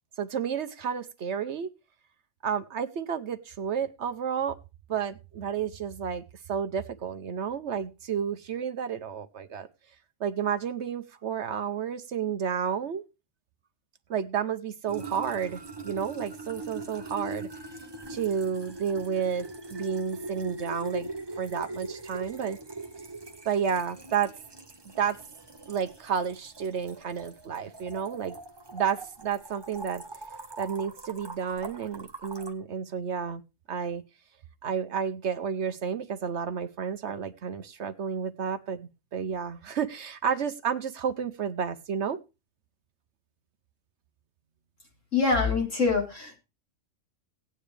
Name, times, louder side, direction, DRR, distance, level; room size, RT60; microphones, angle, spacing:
voice 1, 0.2-1.7 2.4-4.6 4.9-6.2 6.5-9.7 10.2-13.0 14.1-17.5 18.1-21.1 21.4-22.6 23.4-24.3 25.0-25.2 25.7-28.4 28.7-30.0 30.6-33.4 33.7-34.0 34.6-42.2, right 7 dB, 60° right, 10 dB, 1.0 m, -31 dB
sound 1, 14.9-32.5, right 3 dB, 20° right, 1.0 m, -41 dB
voice 2, 45.1-46.4, left 4 dB, 70° left, -1 dB, 4.4 m, -25 dB
17.0 x 9.3 x 3.3 m, 0.29 s
omnidirectional pair, 1.4 m